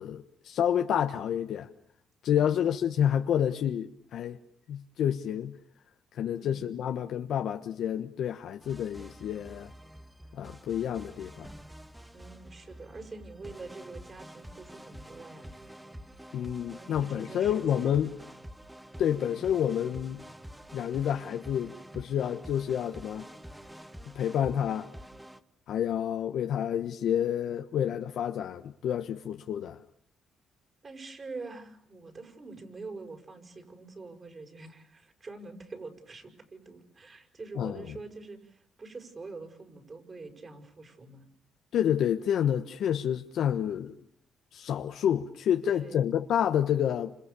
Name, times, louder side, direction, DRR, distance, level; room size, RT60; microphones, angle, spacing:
voice 1, 0.0-1.7 2.2-4.4 4.7-5.5 6.1-9.7 10.3-11.5 16.3-18.1 19.0-20.2 20.7-23.2 24.1-24.9 25.7-29.8 37.6-37.9 41.7-43.9 44.5-47.2, left 9 dB, 75° left, 1.3 m, -29 dB
voice 2, 2.3-2.7 6.4-6.6 12.1-15.5 16.7-18.0 19.3-19.5 30.8-41.2 45.6-46.1, right 3 dB, 35° right, 6.3 m, -45 dB
sound 1, 8.6-25.4, equal, 5° right, 1.6 m, -48 dB
30.0 x 27.0 x 7.0 m
cardioid pair, 105°, 0 cm